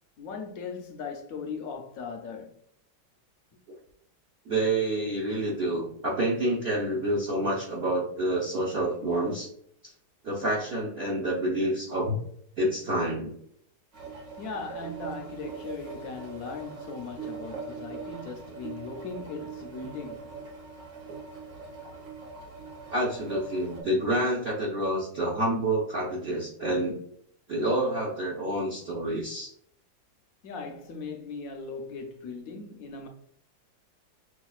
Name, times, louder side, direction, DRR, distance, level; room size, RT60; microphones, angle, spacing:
voice 1, 0.2-2.5 14.4-20.3 30.4-33.1, left 4 dB, 65° left, 0.9 m, -38 dB
voice 2, 4.5-9.5 10.2-12.1 12.6-13.4 22.9-27.0 27.5-29.5, right 1 dB, 50° right, 0.8 m, -28 dB
sound 1, 13.9-23.8, right 4 dB, 80° right, 1.9 m, -41 dB
6.3 x 2.4 x 2.3 m
omnidirectional pair, 1.9 m